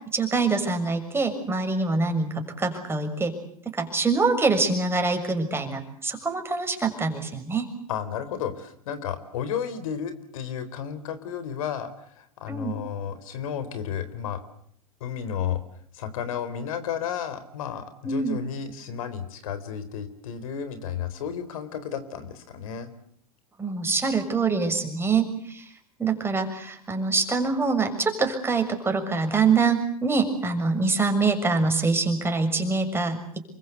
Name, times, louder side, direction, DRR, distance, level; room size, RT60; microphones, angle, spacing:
voice 1, 0.1-3.3 3.7-7.6 12.5-12.7 18.0-18.4 23.6-25.6 26.0-33.2, right 4 dB, 15° right, 5 dB, 6.7 m, -25 dB
voice 2, 7.9-14.4 15.0-15.6 15.9-22.9, left 8 dB, 70° left, 12 dB, 4.1 m, -32 dB
28.0 x 23.5 x 8.3 m, 0.66 s
hypercardioid pair, 95°, 19 cm